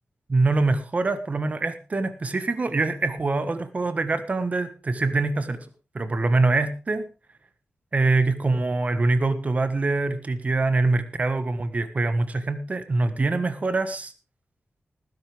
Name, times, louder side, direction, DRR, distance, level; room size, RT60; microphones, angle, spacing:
voice 1, 0.3-5.7 5.9-7.1 7.9-14.1, right 3 dB, 35° right, 10 dB, 1.5 m, -24 dB
19.5 x 11.0 x 3.5 m, 0.32 s
wide cardioid pair, 170°, 4 cm